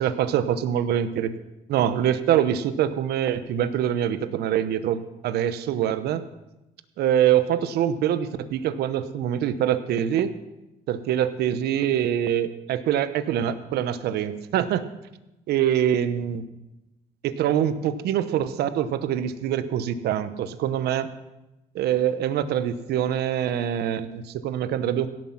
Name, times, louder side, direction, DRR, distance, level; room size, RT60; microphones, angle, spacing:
voice 1, 0.0-1.3 1.7-6.2 7.0-10.3 10.9-14.8 15.5-16.4 17.2-21.1 21.7-25.1, right 10 dB, 75° right, 12 dB, 0.9 m, -24 dB
17.0 x 7.6 x 5.9 m, 0.96 s
cardioid pair, 110°, 17 cm